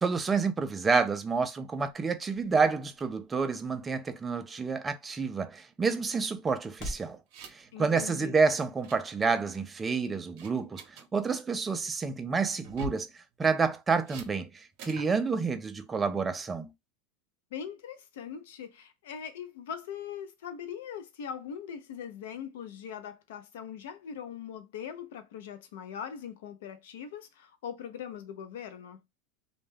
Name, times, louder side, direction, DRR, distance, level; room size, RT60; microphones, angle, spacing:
voice 1, 0.0-7.2 7.5-16.7, right 4 dB, 15° right, 0.3 m, -29 dB
sound 1, 0.9-7.2, equal, 45° left, 0.8 m, -49 dB
sound 2, 6.8-7.7 8.0-8.2 8.5-9.0 9.5-9.9 10.4-11.1 12.6-13.1 14.1-14.3 14.8-15.1, right 2 dB, 55° right, 0.7 m, -43 dB
voice 2, 7.7-8.3 17.5-29.0, left 8 dB, 80° left, 0.5 m, -41 dB
2.1 x 2.1 x 3.2 m
supercardioid pair, 140°, 0 cm